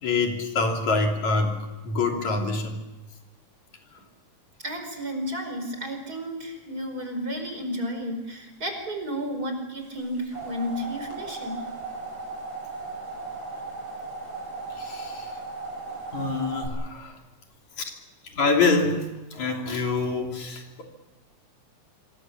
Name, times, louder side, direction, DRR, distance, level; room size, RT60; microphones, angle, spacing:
voice 1, 0.0-2.8 14.7-15.3 16.1-17.2 17.8-17.9 18.3-20.8, left 3 dB, 70° left, 2 dB, 4.6 m, -26 dB
voice 2, 4.6-11.6, equal, 30° right, 5 dB, 5.4 m, -32 dB
sound 1, 10.0-16.7, right 3 dB, 50° right, 6.9 m, -36 dB
26.5 x 24.0 x 7.4 m, 1.1 s
omnidirectional pair, 3.4 m